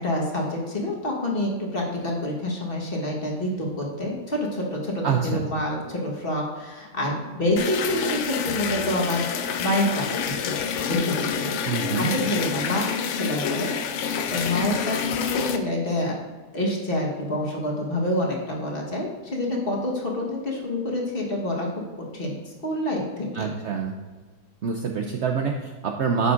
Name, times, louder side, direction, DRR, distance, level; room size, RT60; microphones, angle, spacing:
voice 1, 0.0-10.6 10.8-11.5 11.9-16.1 16.5-21.7 22.1-23.5, left 1 dB, 35° left, -2 dB, 1.4 m, -27 dB
voice 2, 5.0-5.4 11.6-12.2 23.3-24.0 24.6-26.3, right 6 dB, 80° right, 3 dB, 0.6 m, -26 dB
sound 1, 7.6-15.6, left 7 dB, 85° left, 0.6 m, -28 dB
10.5 x 6.9 x 2.5 m, 1.3 s
omnidirectional pair, 1.8 m